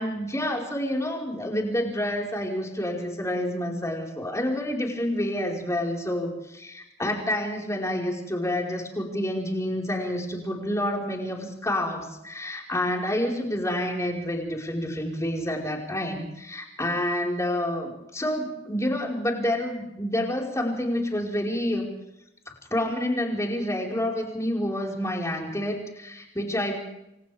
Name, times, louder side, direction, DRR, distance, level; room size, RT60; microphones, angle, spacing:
voice 1, 0.0-21.9 22.5-26.8, left 1 dB, 15° left, 0 dB, 5.1 m, -28 dB
29.5 x 25.0 x 3.6 m, 0.85 s
head